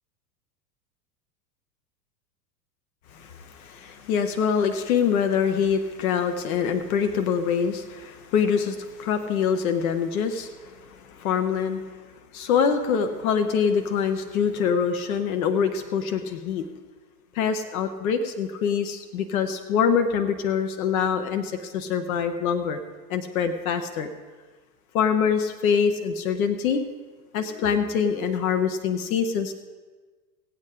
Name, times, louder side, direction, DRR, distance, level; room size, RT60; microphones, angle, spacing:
voice 1, 3.1-12.0 12.3-16.6 17.3-22.8 23.1-24.1 24.9-26.8 27.3-29.5, left 7 dB, 60° left, 8 dB, 1.1 m, -25 dB
18.0 x 8.5 x 5.0 m, 1.4 s
figure-of-eight pair, 90°, 49 cm